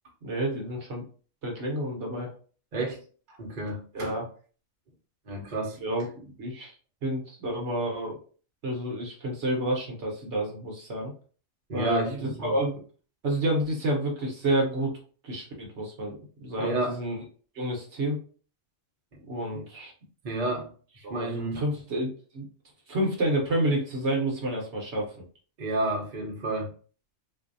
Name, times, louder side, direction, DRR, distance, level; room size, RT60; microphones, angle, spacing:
voice 1, 0.2-1.0 1.4-2.3 3.9-4.3 5.8-6.7 7.0-8.2 8.6-11.1 11.7-12.8 13.2-15.0 15.2-17.2 17.5-18.2 19.3-19.9 21.0-22.5 22.9-25.2, right 1 dB, 60° right, 0 dB, 1.1 m, -29 dB
voice 2, 3.3-4.2 5.3-5.8 11.7-12.5 16.6-17.0 19.5-19.6 20.2-20.7 21.1-21.6 25.6-26.7, right 2 dB, 40° right, -1 dB, 1.0 m, -30 dB
4.0 x 2.6 x 2.6 m, 0.41 s
omnidirectional pair, 1.4 m